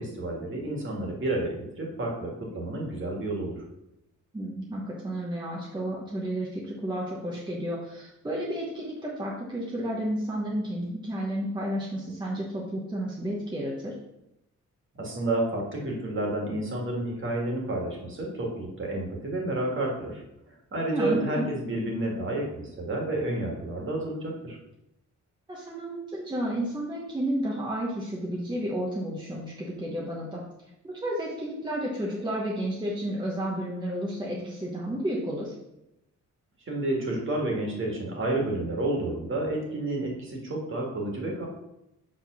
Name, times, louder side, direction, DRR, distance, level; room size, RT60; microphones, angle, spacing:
voice 1, 0.0-3.6 15.0-20.2 20.7-24.6 36.7-41.4, right 2 dB, 40° right, -1 dB, 1.9 m, -30 dB
voice 2, 4.3-13.9 20.9-21.5 25.5-30.4 30.8-35.5, right 1 dB, 15° right, -4 dB, 1.0 m, -31 dB
7.1 x 3.7 x 6.1 m, 0.87 s
wide cardioid pair, 170°, 31 cm